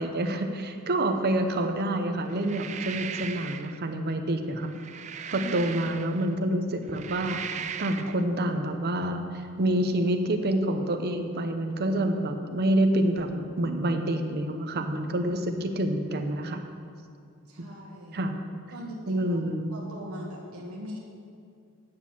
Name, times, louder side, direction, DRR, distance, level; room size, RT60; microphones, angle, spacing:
voice 1, 0.0-4.7 5.3-7.4 7.8-16.6 17.6-17.7 18.1-18.3 19.1-19.7, right 1 dB, 45° right, 6 dB, 0.8 m, -27 dB
sound 1, 2.3-3.8 4.6-6.3 6.8-8.2, right 7 dB, 30° right, 0.3 m, -38 dB
voice 2, 17.5-18.2 18.7-19.4 19.7-21.0, equal, 75° right, -3 dB, 1.5 m, -41 dB
9.8 x 6.3 x 7.1 m, 2.3 s
head